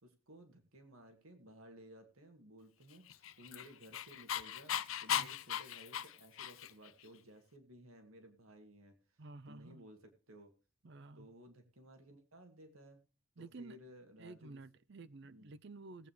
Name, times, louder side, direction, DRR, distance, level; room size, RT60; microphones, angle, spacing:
voice 1, 0.0-10.5 11.2-13.0 13.4-14.6 15.3-15.5, equal, 90° right, 2.4 m, -58 dB
Dog, 3.1-6.9, left 9 dB, 75° left, 0.6 m, -38 dB
voice 2, 9.2-9.8 10.8-11.3 13.4-13.8 14.2-16.1, right 3 dB, 55° right, 0.6 m, -52 dB
19.0 x 8.6 x 3.1 m
head